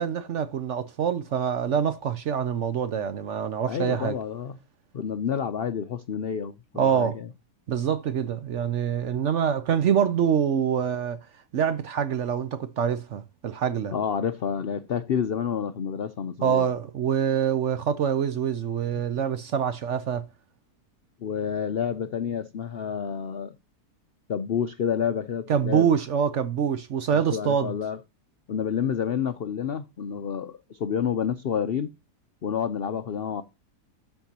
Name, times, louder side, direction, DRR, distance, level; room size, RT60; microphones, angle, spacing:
voice 1, 0.0-4.2 6.7-7.2 7.7-11.2 11.5-13.9 16.4-20.3 25.5-27.7, right 8 dB, 60° right, 0.8 m, -25 dB
voice 2, 3.7-4.6 4.9-7.3 13.9-16.7 21.2-23.6 24.3-25.9 27.1-28.0 28.5-31.9 32.4-33.4, left 7 dB, 85° left, 0.5 m, -29 dB
13.0 x 4.5 x 2.8 m
omnidirectional pair, 1.8 m